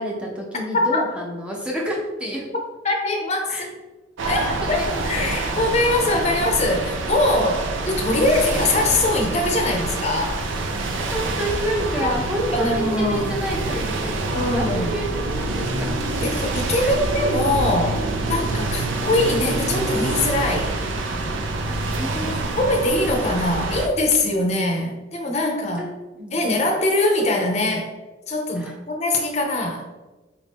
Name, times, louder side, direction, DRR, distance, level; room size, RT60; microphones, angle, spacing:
voice 1, 0.0-2.5 3.5-3.7 4.5-5.3 11.1-15.9 16.8-17.0 22.0-22.7 25.8-25.9 26.1-26.6 28.5-28.7, equal, 5° right, -3 dB, 0.7 m, -29 dB
voice 2, 2.8-3.8 4.3-4.8 5.1-10.4 12.0-12.1 12.5-13.3 14.3-14.9 16.2-20.7 22.6-25.8 26.3-27.9 28.3-29.9, left 2 dB, 35° left, 2 dB, 0.6 m, -22 dB
sound 1, 4.2-23.9, right 2 dB, 90° right, 0.5 m, -26 dB
4.4 x 2.6 x 3.5 m, 1.2 s
head